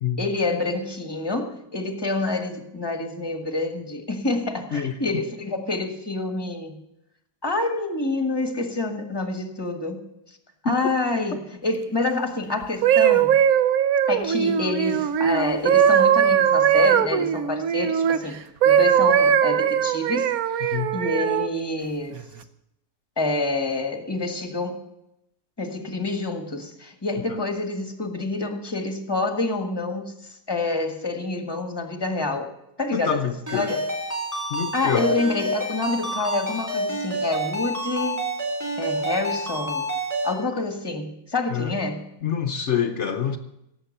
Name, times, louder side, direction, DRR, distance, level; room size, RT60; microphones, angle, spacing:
voice 1, 0.2-6.8 7.4-10.4 10.6-13.3 14.1-18.4 18.6-22.2 23.2-24.8 25.6-32.5 32.8-33.9 34.7-38.2 38.8-39.9 40.2-42.1, left 2 dB, 15° left, 5 dB, 1.5 m, -27 dB
sound 1, 12.6-18.2 18.6-21.5 22.1-22.4, right 8 dB, 65° right, 1.0 m, -20 dB
voice 2, 32.9-33.8 34.5-35.1 41.5-41.7 42.2-43.4, left 8 dB, 60° left, 7 dB, 0.7 m, -26 dB
Ringtone, 33.5-40.3, right 1 dB, 10° right, 3.9 m, -28 dB
17.0 x 8.0 x 6.6 m, 0.85 s
omnidirectional pair, 2.0 m